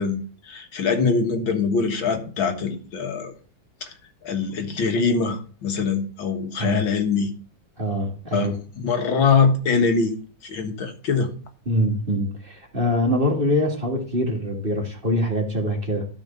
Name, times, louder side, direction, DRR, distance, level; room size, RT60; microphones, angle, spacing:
voice 1, 0.0-3.3 3.8-3.9 4.2-7.3 8.3-10.1 10.4-11.3, left 5 dB, 75° left, 2.2 m, -23 dB
voice 2, 6.6-6.9 7.8-8.5 11.7-16.1, equal, 30° right, 2.0 m, -24 dB
12.5 x 4.4 x 6.9 m
omnidirectional pair, 2.2 m